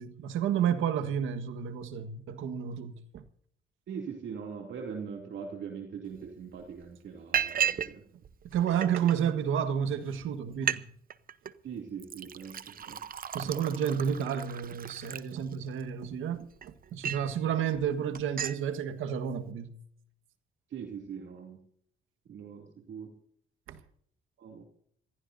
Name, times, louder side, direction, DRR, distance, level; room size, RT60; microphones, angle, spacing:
voice 1, 0.0-3.2 8.4-10.9 13.3-19.8 23.7-23.8, right 8 dB, 85° right, 1.5 m, -31 dB
voice 2, 3.9-8.0 11.6-13.0 20.7-21.6 22.3-23.1 24.4-24.6, right 6 dB, 70° right, 2.8 m, -41 dB
Liquid, 6.2-6.3 6.6-6.8 7.3-7.9 8.2-9.1 9.8-9.9 10.2-10.3 10.5-10.8 11.1-11.5 12.0-15.8 16.3-17.3 17.7-17.9 18.1-18.6, right 8 dB, 45° right, 0.9 m, -34 dB
26.5 x 15.0 x 2.7 m
cardioid pair, 90°, 20 cm